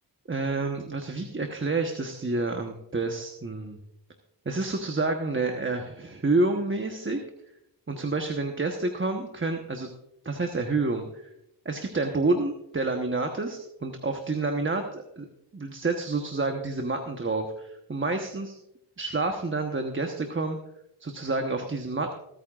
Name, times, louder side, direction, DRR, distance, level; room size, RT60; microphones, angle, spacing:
voice 1, 0.3-3.8 4.4-7.2 7.9-9.9 10.2-11.3 11.6-15.3 15.5-18.6 19.0-20.6 21.0-22.2, right 3 dB, 25° right, 4 dB, 1.1 m, -29 dB
25.0 x 8.9 x 2.4 m, 0.80 s
cardioid pair, 65°, 44 cm